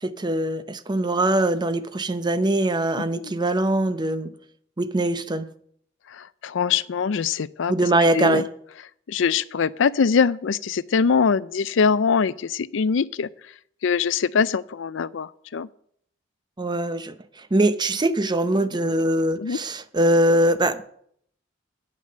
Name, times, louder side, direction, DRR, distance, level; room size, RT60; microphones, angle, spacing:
voice 1, 0.0-4.3 4.8-5.5 7.7-8.5 16.6-20.9, right 1 dB, 20° right, 12 dB, 0.6 m, -22 dB
voice 2, 6.4-7.7 8.1-8.4 9.1-13.3 13.8-15.7 19.4-19.6, left 6 dB, 70° left, 18 dB, 0.4 m, -22 dB
9.6 x 8.4 x 6.6 m, 0.66 s
head